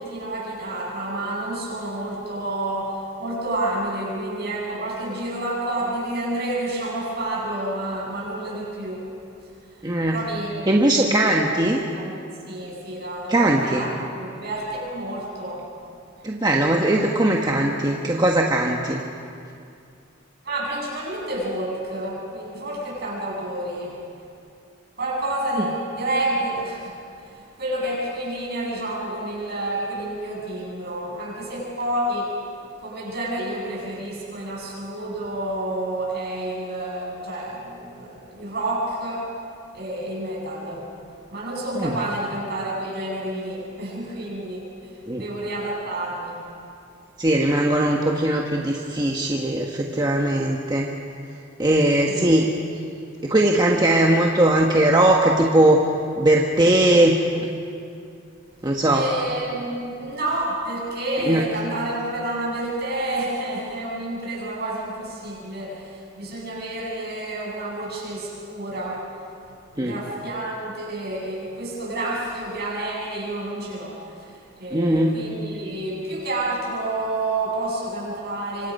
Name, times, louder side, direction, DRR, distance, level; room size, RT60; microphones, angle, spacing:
voice 1, 0.0-9.0 9.7-9.8 10.1-11.4 11.9-12.1 12.5-15.6 20.4-24.0 25.0-26.9 27.2-32.3 32.8-39.3 39.7-40.9 41.3-46.4 52.1-52.2 58.9-69.0 69.7-78.7, right 1 dB, 55° right, -4 dB, 7.6 m, -29 dB
voice 2, 9.8-10.2 10.7-11.8 13.3-13.8 16.2-19.0 41.8-42.0 45.1-45.2 47.2-50.9 51.6-52.5 53.2-55.8 56.2-57.5 58.6-59.0 61.2-61.4 69.8-70.0 74.7-75.1, right 1 dB, 20° right, 0 dB, 1.3 m, -19 dB
26.0 x 25.5 x 5.5 m, 2.5 s
head